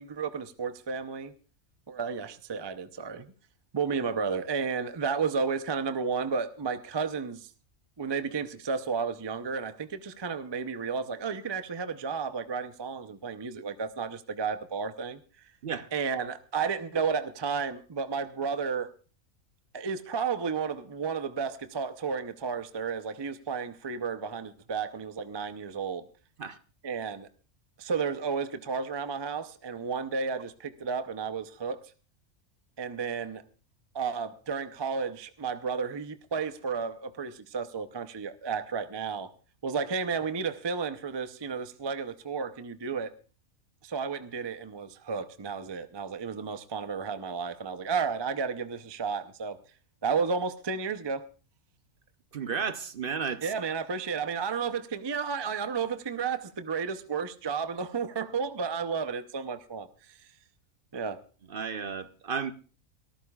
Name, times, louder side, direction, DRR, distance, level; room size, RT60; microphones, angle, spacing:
voice 1, 0.0-1.3 1.9-3.3 3.7-7.5 8.0-15.2 15.9-18.9 19.7-26.0 26.8-27.3 27.8-31.8 32.8-33.4 33.9-39.3 39.6-43.1 43.8-49.6 50.0-51.2 53.4-60.2 60.9-61.2, right 5 dB, 35° right, 0.4 m, -32 dB
voice 2, 52.3-53.5 61.5-62.5, right 6 dB, 50° right, 0.8 m, -33 dB
24.0 x 14.0 x 2.3 m
omnidirectional pair, 1.4 m